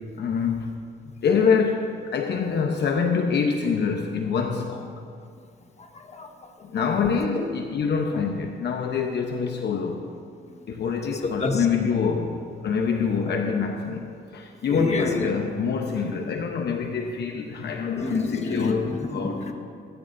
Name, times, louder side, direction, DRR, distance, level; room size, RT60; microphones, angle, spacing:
voice 1, 0.2-0.8 1.2-4.9 6.6-10.1 10.7-19.5, left 5 dB, 60° left, 3 dB, 1.0 m, -25 dB
voice 2, 5.8-6.3 7.3-7.5 11.1-11.6 14.7-15.3 16.0-16.1 17.9-19.5, left 3 dB, 35° left, 4 dB, 1.5 m, -29 dB
21.5 x 12.5 x 2.7 m, 2.4 s
cardioid pair, 90°, 20 cm